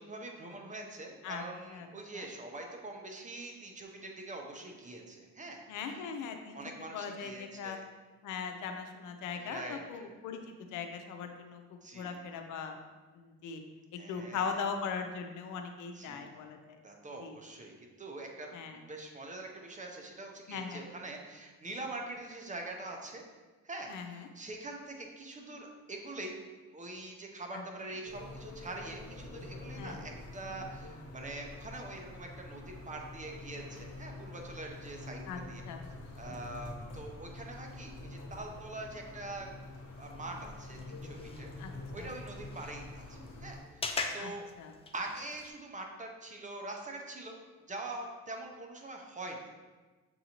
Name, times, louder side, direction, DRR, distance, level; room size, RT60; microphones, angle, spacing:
voice 1, 0.0-5.6 5.9-6.0 6.5-7.8 9.4-10.1 11.8-12.2 14.0-14.6 15.9-16.3 16.8-23.2 23.6-26.4 26.7-35.6 36.2-39.5 40.0-44.4 44.9-47.4 47.7-49.5, right 2 dB, 25° right, 1 dB, 0.7 m, -44 dB
voice 2, 5.7-6.6 6.9-7.8 8.2-10.4 10.7-11.6 11.9-12.8 13.1-13.6 13.9-16.6 17.2-17.4 18.5-18.8 20.5-20.8 23.9-24.3 27.5-27.6 29.8-30.0 35.3-35.4 35.7-35.8 36.3-36.4 41.6-41.7 42.0-42.1 44.2-44.3 44.6-44.7, left 6 dB, 80° left, 5 dB, 0.6 m, -39 dB
sound 1, 28.0-43.6, left 2 dB, 60° left, 1.1 m, -46 dB
sound 2, 39.9-45.5, left 4 dB, 20° left, 0.4 m, -43 dB
6.9 x 2.6 x 2.9 m, 1.3 s
cardioid pair, 90°, 30 cm